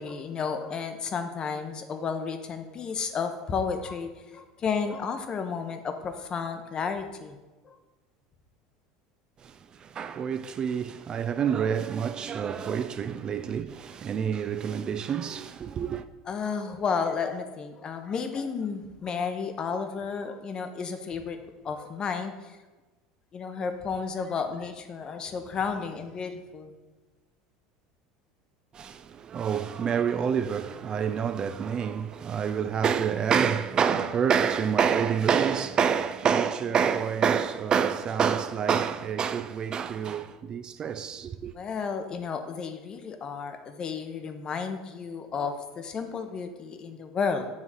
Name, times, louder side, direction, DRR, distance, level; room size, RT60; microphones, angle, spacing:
voice 1, 0.0-7.4 7.6-7.8 16.3-21.4 21.6-22.6 23.3-26.8 41.5-47.5, left 5 dB, 35° left, 0.7 m, -32 dB
voice 2, 9.4-16.0 28.7-41.5, right 7 dB, 35° right, 0.3 m, -27 dB
7.2 x 3.2 x 5.6 m
supercardioid pair, 110°, 2 cm